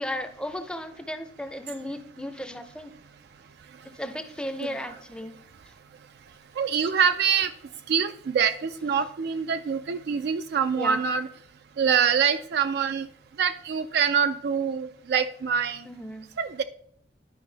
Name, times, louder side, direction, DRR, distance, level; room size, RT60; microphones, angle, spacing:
voice 1, 0.0-2.9 3.8-5.4 6.8-6.9 10.7-11.0 15.8-16.3, left 1 dB, 5° left, 8 dB, 0.5 m, -35 dB
voice 2, 4.6-5.0 6.6-7.5 7.9-11.3 11.8-13.1 13.4-15.8 16.4-16.6, right 7 dB, 60° right, 9 dB, 0.3 m, -25 dB
11.0 x 5.0 x 3.3 m, 0.68 s
head